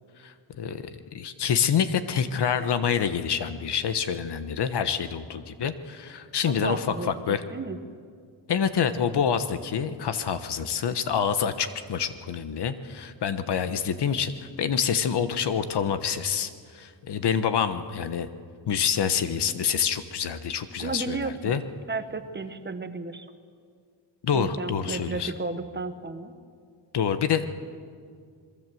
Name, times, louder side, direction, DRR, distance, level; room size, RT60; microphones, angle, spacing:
voice 1, 0.2-7.4 8.5-18.3 18.7-21.6 24.2-25.3 26.9-27.5, left 7 dB, 60° left, 11 dB, 1.2 m, -27 dB
voice 2, 6.5-7.8 20.8-21.6 21.9-23.3 24.3-26.3, right 3 dB, 25° right, 9 dB, 1.1 m, -33 dB
27.5 x 22.0 x 7.8 m, 2.1 s
wide cardioid pair, 165°, 46 cm